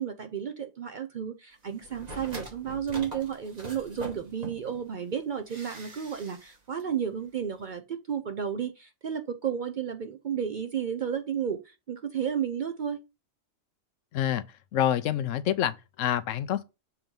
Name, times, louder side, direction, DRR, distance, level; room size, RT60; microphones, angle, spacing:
voice 1, 0.0-13.0, right 8 dB, 55° right, 0.6 m, -32 dB
sound 1, 1.8-4.8 5.5-6.5 6.8-6.9, right 2 dB, 35° right, 1.4 m, -42 dB
voice 2, 14.1-14.4 14.7-16.6, left 11 dB, 80° left, 0.9 m, -27 dB
7.0 x 3.0 x 5.2 m
omnidirectional pair, 1.3 m